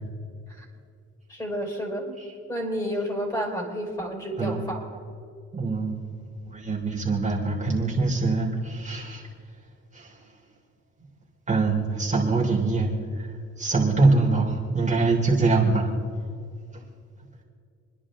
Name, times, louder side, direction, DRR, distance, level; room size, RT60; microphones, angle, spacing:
voice 1, 1.3-2.2 2.5-4.9, equal, 15° left, 0 dB, 4.9 m, -30 dB
voice 2, 5.5-9.3 9.9-10.1 11.5-12.9 13.2-13.3 13.6-15.9, right 3 dB, 25° right, -4 dB, 3.3 m, -24 dB
29.0 x 10.5 x 3.7 m, 2.3 s
cardioid pair, 90°, 30 cm